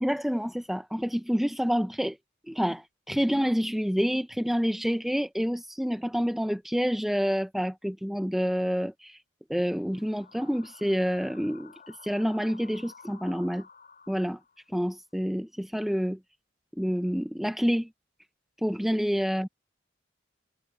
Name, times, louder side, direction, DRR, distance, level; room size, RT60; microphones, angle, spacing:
voice 1, 0.0-2.2 2.5-9.2 9.5-13.6 14.1-14.4 14.7-16.2 16.8-17.9 18.6-19.5, equal, ahead, 0.7 m, -28 dB
sound 1, 9.7-14.8, left 5 dB, 45° left, 6.3 m, -53 dB
head